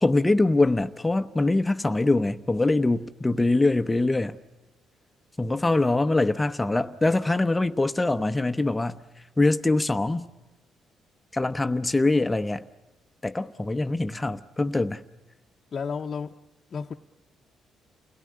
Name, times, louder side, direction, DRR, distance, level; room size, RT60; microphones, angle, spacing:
voice 1, 0.0-4.4 5.4-9.0 9.4-10.3 11.3-12.6 13.2-15.0, left 2 dB, 15° left, 0.9 m, -23 dB
voice 2, 15.7-16.4 16.7-16.9, left 5 dB, 50° left, 0.8 m, -32 dB
29.5 x 18.0 x 9.7 m
cardioid pair, 90°, 0 cm